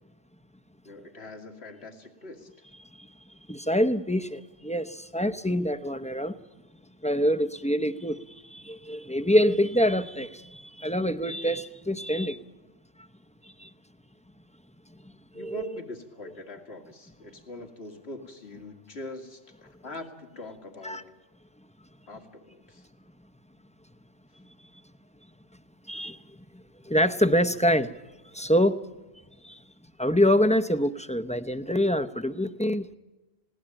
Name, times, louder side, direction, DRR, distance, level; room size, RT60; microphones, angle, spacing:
voice 1, 0.8-2.5 15.3-21.1 22.1-22.9, left 1 dB, 75° left, 2.4 m, -42 dB
voice 2, 2.8-6.4 7.0-12.4 13.0-13.1 13.4-13.7 14.9-15.7 20.8-21.0 24.4-24.5 25.9-26.2 26.5-28.0 28.3-28.8 29.4-29.6 30.0-32.9, equal, 10° left, 0.6 m, -26 dB
20.0 x 17.5 x 8.8 m
omnidirectional pair, 1.1 m